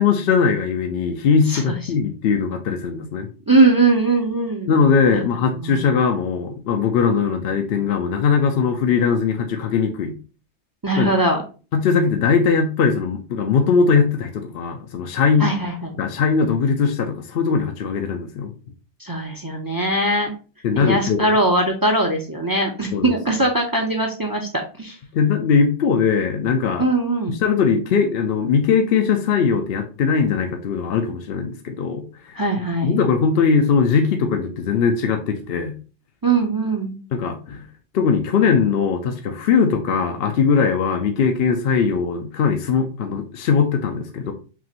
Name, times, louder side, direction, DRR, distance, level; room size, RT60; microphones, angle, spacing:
voice 1, 0.0-3.3 4.7-10.1 11.0-11.1 11.7-15.5 16.0-18.5 20.6-21.3 22.9-23.1 25.1-26.9 27.3-32.4 32.8-35.7 37.1-37.6 37.9-44.3, left 5 dB, 65° left, 4 dB, 0.7 m, -20 dB
voice 2, 3.5-4.7 5.1-5.2 5.6-5.8 10.8-11.4 15.4-16.0 19.0-20.3 20.7-25.0 26.8-27.4 32.3-32.9 36.2-37.0, right 2 dB, 25° right, 2 dB, 0.5 m, -20 dB
5.8 x 2.5 x 2.9 m, 0.35 s
omnidirectional pair, 1.2 m